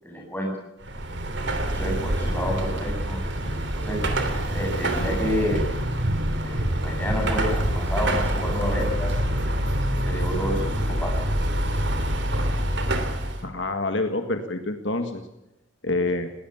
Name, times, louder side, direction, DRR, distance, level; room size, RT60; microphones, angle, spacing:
voice 1, 0.0-0.5 1.5-3.2 3.7-4.0 4.5-5.6 6.4-9.1 10.0-11.1, equal, 10° left, -1 dB, 7.8 m, -29 dB
Car passing by / Traffic noise roadway noise / Engine, 0.8-13.4, right 1 dB, 55° right, 3.2 m, -26 dB
voice 2, 13.4-15.2 15.8-16.3, left 2 dB, 60° left, 6 dB, 1.8 m, -27 dB
21.0 x 18.5 x 7.1 m, 0.91 s
head